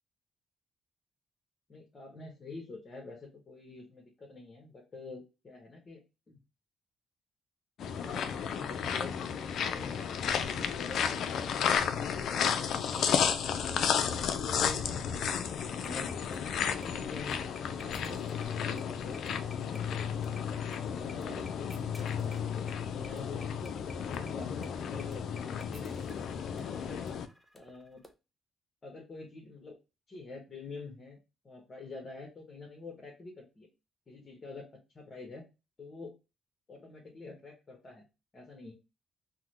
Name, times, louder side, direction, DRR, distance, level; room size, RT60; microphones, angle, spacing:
voice 1, 1.7-6.4 7.8-11.0 11.7-17.4 17.8-19.2 20.9-26.1 26.5-27.0 27.5-28.1 28.8-29.7 30.1-31.2 31.4-33.7 34.1-34.7 34.9-35.4 35.8-36.1 36.7-38.0 38.3-38.7, left 3 dB, 35° left, -1 dB, 1.1 m, -47 dB
sound 1, 7.8-27.3, left 7 dB, 70° left, 0.3 m, -33 dB
sound 2, 15.2-28.1, left 2 dB, 10° left, 0.7 m, -52 dB
3.7 x 2.1 x 3.0 m, 0.28 s
cardioid pair, 90°, 0 cm